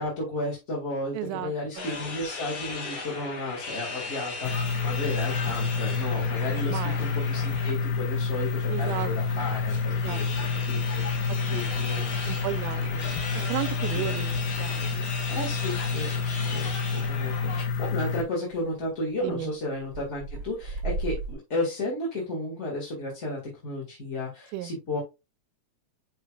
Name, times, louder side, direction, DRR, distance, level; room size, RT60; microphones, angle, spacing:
voice 1, 0.0-10.3 10.7-12.3 13.9-14.2 15.3-16.2 16.5-25.0, left 1 dB, 25° left, 1.8 m, -33 dB
voice 2, 1.1-1.9 6.5-7.1 8.7-9.5 10.0-10.2 11.5-11.6 12.2-15.1 19.2-19.5 24.5-24.7, right 13 dB, 85° right, 2.1 m, -35 dB
sound 1, 1.8-17.6, left 4 dB, 45° left, 2.5 m, -38 dB
sound 2, 4.4-18.2, left 4 dB, 90° left, 2.5 m, -28 dB
sound 3, 4.6-21.4, right 3 dB, 45° right, 1.1 m, -43 dB
9.7 x 4.3 x 2.4 m
omnidirectional pair, 3.7 m